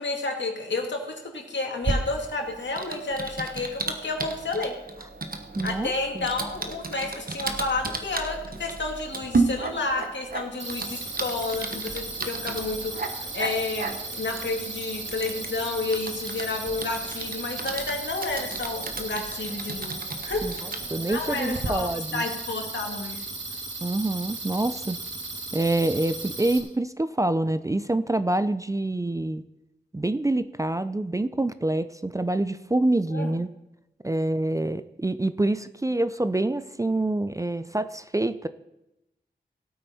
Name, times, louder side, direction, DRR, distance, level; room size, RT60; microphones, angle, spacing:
voice 1, 0.0-4.7 5.6-20.4 21.1-23.3 33.1-33.3, left 3 dB, 75° left, 2 dB, 2.1 m, -31 dB
Typing, 1.8-21.7, right 3 dB, 50° right, 1.2 m, -34 dB
voice 2, 5.6-6.3 20.4-20.5 20.9-22.2 23.8-25.0 25.5-29.4 29.9-33.5 34.0-38.5, right 2 dB, 15° right, 12 dB, 0.4 m, -26 dB
sound 1, 10.6-26.6, right 2 dB, 80° right, 1.6 m, -36 dB
16.5 x 8.5 x 4.2 m, 0.91 s
wide cardioid pair, 60°, 19 cm